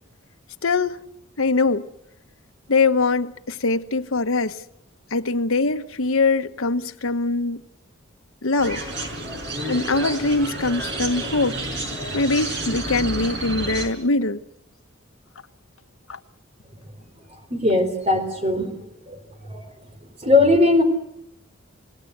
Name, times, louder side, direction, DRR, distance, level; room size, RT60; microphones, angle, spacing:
voice 1, 0.6-1.0 1.4-1.9 2.7-4.6 5.1-7.6 8.4-8.8 9.7-11.6 12.1-14.4 16.1-16.2, left 3 dB, 80° left, 1.1 m, -22 dB
sound 1, 8.6-13.9, right 2 dB, 55° right, 5.3 m, -30 dB
voice 2, 17.5-18.7 19.1-19.2 19.5-19.6 20.2-20.8, left 2 dB, 30° right, 3.7 m, -18 dB
28.0 x 18.5 x 8.0 m
head